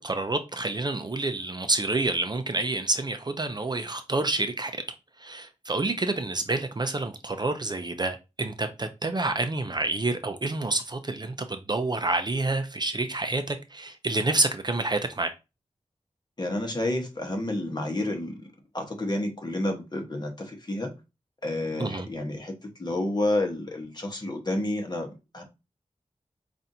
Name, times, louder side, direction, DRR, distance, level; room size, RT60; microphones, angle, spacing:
voice 1, 0.0-4.7 5.2-15.3 21.8-22.1, right 2 dB, 35° right, 0.5 m, -28 dB
voice 2, 16.4-18.5 18.7-20.9 21.4-22.5 22.8-25.4, left 1 dB, 35° left, 1.1 m, -30 dB
5.5 x 2.5 x 2.7 m
wide cardioid pair, 75°, 12 cm